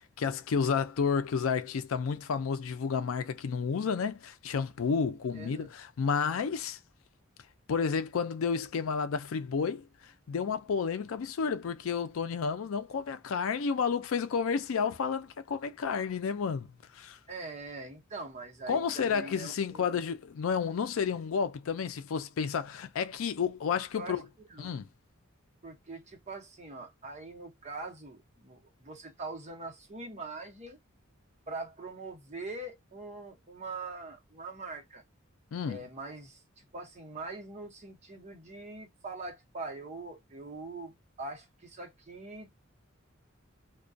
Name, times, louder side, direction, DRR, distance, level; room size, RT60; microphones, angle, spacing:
voice 1, 0.2-6.8 7.7-16.7 16.9-17.2 18.7-24.2 24.6-24.9 35.5-35.8, left 6 dB, 85° left, 0.4 m, -31 dB
voice 2, 5.3-5.7 17.3-20.0 23.9-24.2 24.5-24.7 25.6-30.8 31.5-35.0 35.7-42.6, right 3 dB, 35° right, 0.8 m, -43 dB
2.3 x 2.2 x 2.5 m
head